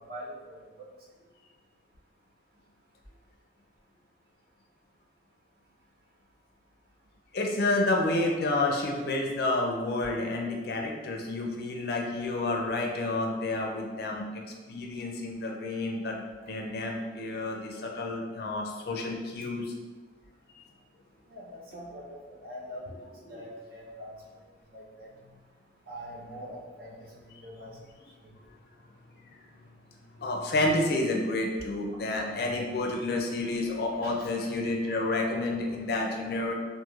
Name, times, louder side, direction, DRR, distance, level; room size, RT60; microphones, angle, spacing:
voice 1, 0.1-0.6 21.3-22.2 22.4-24.1 24.7-25.1 25.9-27.0 27.2-27.7 33.9-34.3, equal, 55° right, -6 dB, 0.7 m, -43 dB
voice 2, 7.3-14.4 14.7-16.2 16.5-19.7 23.3-23.4 30.2-36.5, left 2 dB, 55° left, 1 dB, 0.4 m, -30 dB
3.0 x 2.5 x 2.4 m, 1.3 s
head